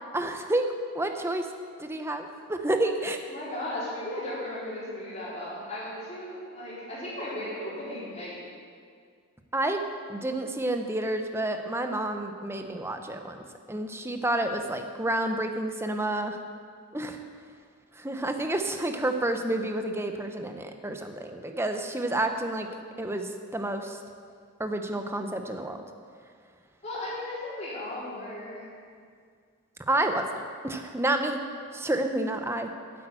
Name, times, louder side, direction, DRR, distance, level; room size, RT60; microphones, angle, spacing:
voice 1, 0.1-1.5 1.8-3.2 9.5-16.4 16.9-17.2 17.9-22.7 23.0-24.0 24.6-25.8 29.9-30.3 30.6-31.4 31.7-32.7, right 1 dB, 10° right, 6 dB, 0.7 m, -29 dB
voice 2, 3.3-8.4 26.8-28.7, left 1 dB, 30° left, -8 dB, 3.8 m, -36 dB
9.0 x 8.6 x 8.9 m, 2.1 s
head